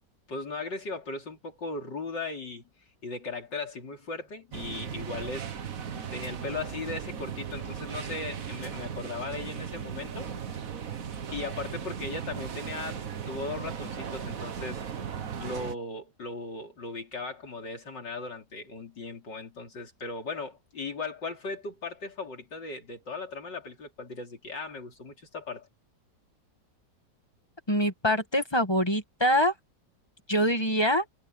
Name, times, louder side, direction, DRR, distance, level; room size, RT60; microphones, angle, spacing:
voice 1, 0.3-2.6 3.0-5.5 6.1-10.3 11.3-14.8 15.4-25.7, left 3 dB, 80° left, 4.2 m, -37 dB
sound 1, 4.5-15.8, right 7 dB, 55° right, 1.6 m, -37 dB
voice 2, 27.7-29.5 30.3-31.0, equal, 15° left, 1.3 m, -24 dB
omnidirectional pair, 1.9 m